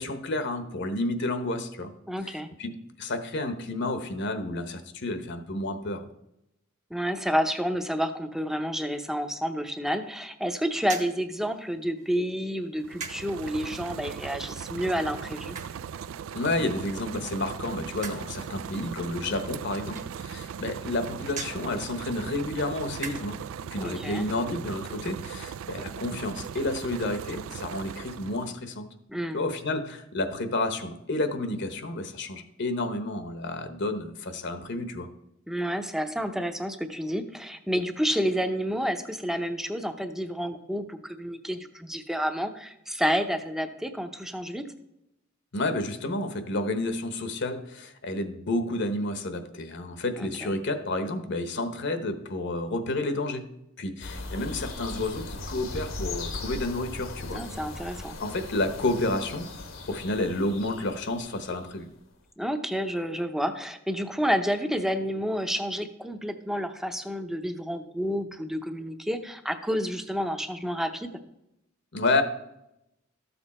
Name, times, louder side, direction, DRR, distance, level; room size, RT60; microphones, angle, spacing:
voice 1, 0.0-1.9 2.2-2.7 3.0-6.1 16.3-23.4 23.7-28.9 29.3-35.1 45.5-53.5 53.8-57.4 58.2-59.5 59.9-61.9 71.9-72.2, left 2 dB, 60° left, 9 dB, 1.0 m, -30 dB
voice 2, 2.1-2.5 6.9-15.6 23.8-24.3 29.1-29.4 35.5-44.6 50.2-50.5 57.3-58.2 62.4-71.1, equal, ahead, 8 dB, 0.7 m, -30 dB
sound 1, 10.8-23.6, right 5 dB, 40° right, 1.3 m, -45 dB
sound 2, 12.8-28.6, right 8 dB, 80° right, 0.3 m, -39 dB
sound 3, 54.0-61.8, left 2 dB, 80° left, 1.3 m, -38 dB
13.0 x 7.0 x 4.3 m, 0.83 s
head